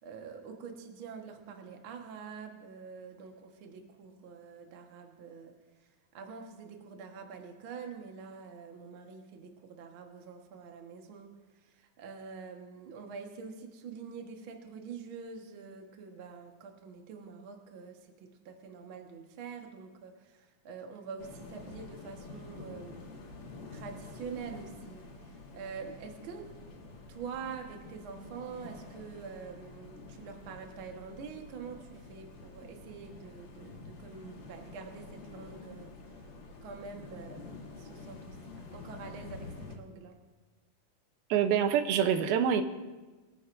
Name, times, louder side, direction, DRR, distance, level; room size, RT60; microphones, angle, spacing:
voice 1, 0.0-5.5 6.1-11.3 11.6-23.1 23.7-26.5 27.1-35.9 36.6-38.4 38.7-40.2, right 5 dB, 50° right, 3 dB, 1.6 m, -45 dB
sound 1, 21.2-39.8, left 3 dB, 70° left, 3.1 m, -48 dB
voice 2, 41.3-42.6, right 8 dB, 90° right, 8 dB, 2.7 m, -26 dB
23.0 x 14.5 x 2.6 m, 1.2 s
omnidirectional pair, 4.1 m